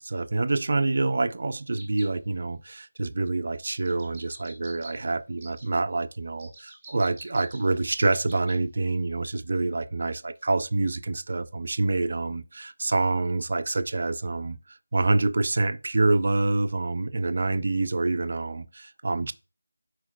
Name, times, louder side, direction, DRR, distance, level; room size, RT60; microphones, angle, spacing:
voice 1, 0.0-14.6 14.9-19.3, right 2 dB, 40° right, 0.3 m, -26 dB
sound 1, 1.8-2.1 3.7-4.9 5.4-5.6 6.4-8.6 8.9-9.0, right 2 dB, 5° right, 1.0 m, -47 dB
10.5 x 4.5 x 2.3 m
figure-of-eight pair, 180°, 0 cm